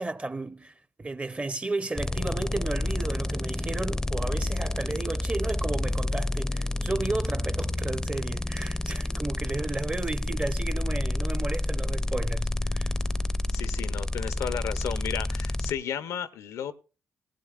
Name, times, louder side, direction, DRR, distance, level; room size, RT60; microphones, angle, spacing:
voice 1, 0.0-12.9, right 2 dB, 25° right, 0.7 m, -33 dB
sound 1, 2.0-15.7, left 1 dB, 10° left, 0.5 m, -29 dB
voice 2, 13.5-16.7, left 8 dB, 85° left, 0.6 m, -33 dB
17.5 x 15.5 x 2.4 m
supercardioid pair, 55°, 5 cm